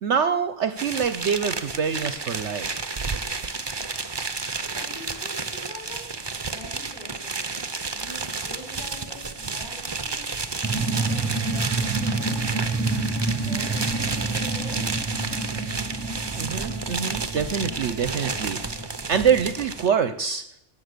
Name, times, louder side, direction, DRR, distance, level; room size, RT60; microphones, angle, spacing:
voice 1, 0.0-3.0 16.4-20.4, right 7 dB, 60° right, 12 dB, 0.9 m, -25 dB
sound 1, 0.8-19.9, right 4 dB, 25° right, 0.7 m, -31 dB
voice 2, 4.7-6.0 6.4-7.3 7.9-10.3 10.9-14.8, left 1 dB, 30° left, -3 dB, 7.7 m, -44 dB
sound 2, 10.6-19.8, right 3 dB, 5° right, 1.4 m, -29 dB
18.5 x 7.4 x 6.7 m, 0.80 s
omnidirectional pair, 1.4 m